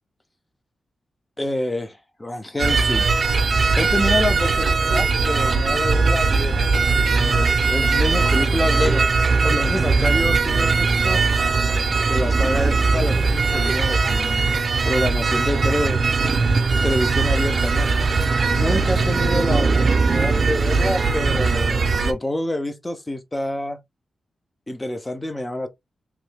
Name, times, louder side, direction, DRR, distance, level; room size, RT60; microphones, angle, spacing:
voice 1, 1.4-3.1 3.7-6.6 7.1-9.0 9.4-11.2 12.1-14.6 14.8-16.0 16.7-17.9 18.5-23.8 24.7-25.7, left 1 dB, 15° left, 0.5 m, -27 dB
sound 1, 2.6-22.1, right 4 dB, 40° right, 0.6 m, -20 dB
3.1 x 2.7 x 3.3 m
wide cardioid pair, 145°, 0 cm